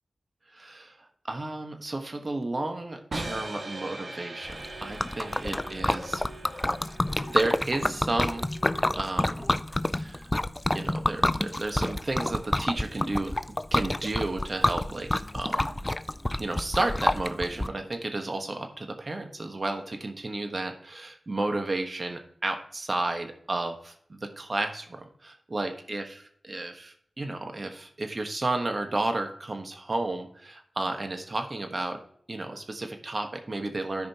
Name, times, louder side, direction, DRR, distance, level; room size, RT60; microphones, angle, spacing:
voice 1, 0.5-1.0 1.2-6.2 7.3-8.5 9.0-9.5 9.9-10.3 10.7-13.4 13.7-15.8 16.4-32.0 32.3-34.1, right 2 dB, 45° right, 5 dB, 1.3 m, -32 dB
sound 1, 3.1-9.1, right 2 dB, 65° right, 1.6 m, -41 dB
Liquid, 4.5-17.7, left 1 dB, 20° left, 0.4 m, -28 dB
13.0 x 5.1 x 2.9 m, 0.63 s
cardioid pair, 50°, 0 cm